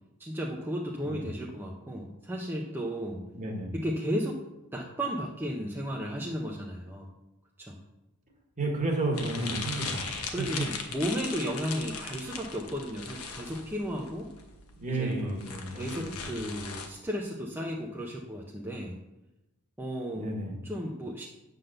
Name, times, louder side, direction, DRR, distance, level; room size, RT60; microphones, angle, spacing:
voice 1, 0.2-3.3 3.7-4.4 4.7-7.1 7.6-7.8 9.4-9.6 10.3-14.3 14.9-15.4 15.7-19.0 19.8-20.3 20.6-21.2, equal, 10° right, -2 dB, 0.6 m, -34 dB
voice 2, 3.3-3.7 8.6-10.3 14.8-16.5 20.1-20.6, right 2 dB, 35° right, 1 dB, 1.5 m, -32 dB
sound 1, 9.1-16.9, left 5 dB, 80° left, 1.1 m, -39 dB
8.2 x 3.9 x 6.5 m, 0.97 s
head